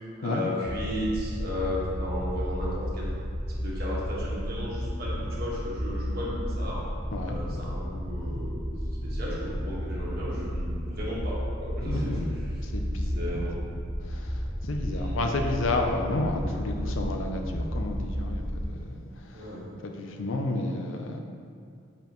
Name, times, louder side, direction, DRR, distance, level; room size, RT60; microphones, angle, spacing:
voice 1, 0.2-3.1 3.5-6.8 7.2-8.7 9.0-12.2 13.1-13.5 14.9-15.2 19.3-19.6, left 1 dB, 50° right, -6 dB, 1.5 m, -35 dB
sound 1, 0.7-18.7, equal, 10° left, 0.4 m, -32 dB
voice 2, 7.1-7.6 11.8-12.3 12.6-13.4 14.0-19.6 19.8-21.2, left 2 dB, 80° left, 3 dB, 0.6 m, -31 dB
6.9 x 5.3 x 3.1 m, 2.4 s
head